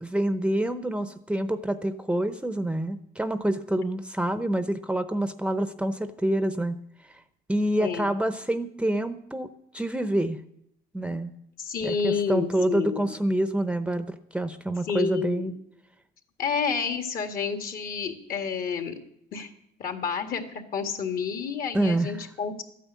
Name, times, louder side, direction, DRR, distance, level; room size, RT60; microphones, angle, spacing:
voice 1, 0.0-6.8 7.5-9.5 9.7-10.4 10.9-11.3 11.8-15.5 21.7-22.1, right 1 dB, 5° right, 11 dB, 0.7 m, -27 dB
voice 2, 7.8-8.1 11.6-13.1 14.9-15.5 16.4-19.0 19.3-19.5 19.8-22.6, left 6 dB, 55° left, 7 dB, 2.0 m, -29 dB
13.5 x 9.1 x 8.4 m, 0.75 s
cardioid pair, 110°, 17 cm